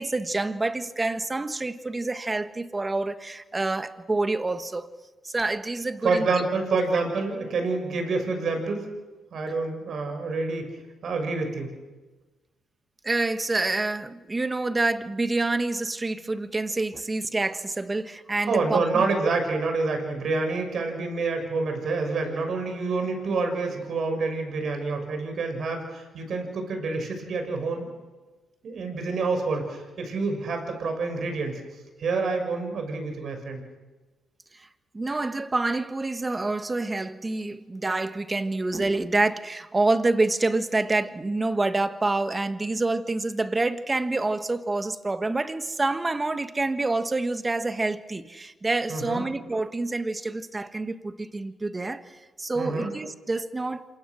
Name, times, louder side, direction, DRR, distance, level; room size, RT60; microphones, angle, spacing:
voice 1, 0.0-4.9 5.2-6.3 13.0-19.0 34.5-34.7 34.9-53.8, right 2 dB, 20° right, 1.5 m, -27 dB
voice 2, 6.0-8.8 9.3-10.7 11.0-11.7 18.5-27.9 28.6-31.6 32.0-33.6 48.9-49.2 52.5-52.9, right 3 dB, 55° right, 6.5 m, -27 dB
27.5 x 24.5 x 6.4 m
cardioid pair, 90°, 0 cm